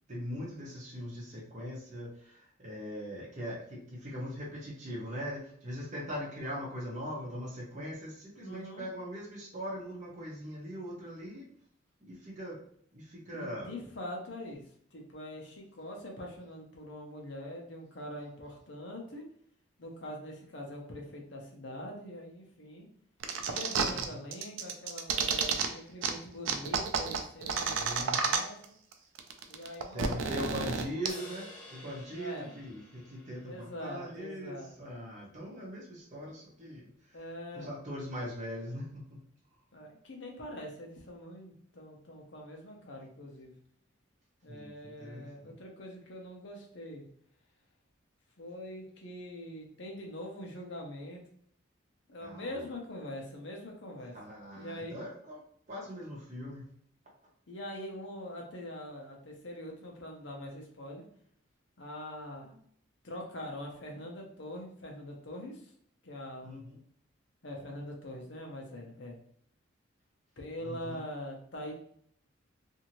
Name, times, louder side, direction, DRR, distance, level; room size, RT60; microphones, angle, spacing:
voice 1, 0.1-11.4 12.0-12.6 12.9-13.7 23.8-24.2 27.6-28.2 29.9-37.3 37.5-39.2 44.5-45.5 52.2-52.6 54.1-56.6 66.4-66.8 70.6-71.0, equal, 40° right, -3 dB, 0.9 m, -41 dB
voice 2, 8.4-8.9 13.3-14.6 14.9-19.2 19.8-22.9 23.4-28.7 29.5-30.8 32.2-32.5 33.5-34.7 37.1-37.7 39.7-43.5 44.4-47.0 48.4-51.2 52.1-54.2 54.5-55.0 57.5-61.0 61.8-62.6 63.0-65.7 66.0-66.6 67.4-69.2 70.4-71.7, left 1 dB, 65° left, 0 dB, 0.8 m, -43 dB
sound 1, 23.2-24.0 24.3-25.7 26.0-26.1 26.4-28.6 28.9-29.0 29.2-31.1, right 6 dB, 80° right, 0.4 m, -30 dB
sound 2, 31.1-34.6, left 1 dB, 30° left, 1.3 m, -52 dB
2.7 x 2.7 x 2.9 m, 0.64 s
head